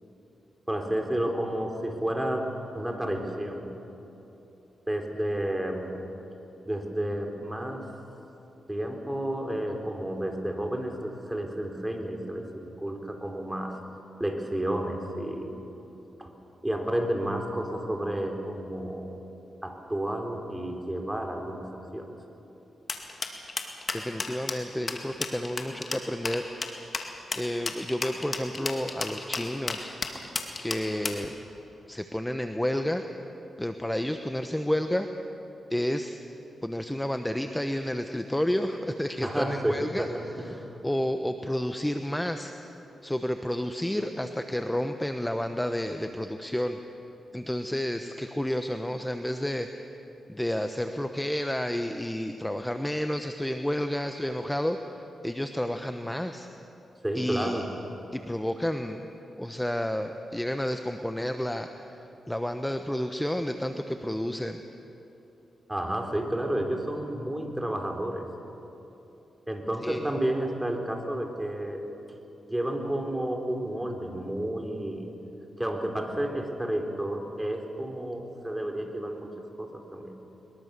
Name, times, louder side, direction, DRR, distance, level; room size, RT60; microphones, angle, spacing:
voice 1, 0.7-3.7 4.9-6.1 6.6-7.9 8.7-13.8 14.2-15.6 16.2-16.3 16.6-19.2 19.6-22.1 30.1-30.3 39.2-40.8 57.0-57.7 65.7-68.3 69.5-71.9 72.4-75.1 75.6-80.2, right 1 dB, 10° right, 3 dB, 3.6 m, -31 dB
sound 1, 22.9-31.3, left 4 dB, 45° left, 2.4 m, -33 dB
voice 2, 23.9-26.4 27.3-30.0 30.6-31.4 31.9-33.0 33.6-35.1 35.7-36.2 36.6-40.1 40.8-42.5 43.0-46.8 47.3-49.8 50.3-56.5 57.1-57.7 58.1-59.1 59.4-62.0 62.3-64.6 69.8-70.0, left 1 dB, 10° left, 7 dB, 1.1 m, -30 dB
22.0 x 22.0 x 6.8 m, 3.0 s
cardioid pair, 60°, 0 cm